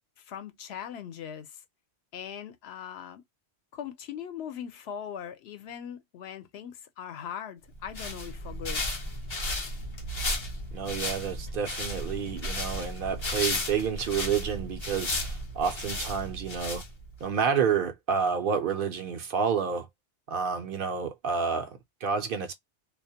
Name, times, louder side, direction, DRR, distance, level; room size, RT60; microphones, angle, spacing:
voice 1, 0.2-1.6 2.1-3.2 3.7-8.9, left 9 dB, 75° left, 0.8 m, -40 dB
sound 1, 7.7-17.2, left 1 dB, 35° left, 0.5 m, -34 dB
voice 2, 10.7-16.8 17.2-19.9 20.3-22.5, right 6 dB, 60° right, 0.7 m, -29 dB
2.3 x 2.1 x 2.6 m
omnidirectional pair, 1.1 m